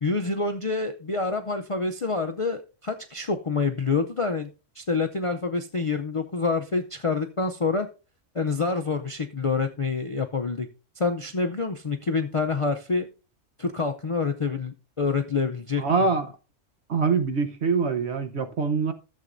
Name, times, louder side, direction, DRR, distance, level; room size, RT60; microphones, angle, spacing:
voice 1, 0.0-4.5 4.8-7.9 8.3-10.7 11.0-13.1 13.6-16.2, left 4 dB, 45° left, 0.4 m, -27 dB
voice 2, 15.8-16.3 16.9-18.9, right 4 dB, 60° right, 1.2 m, -24 dB
14.0 x 7.5 x 2.5 m
omnidirectional pair, 1.3 m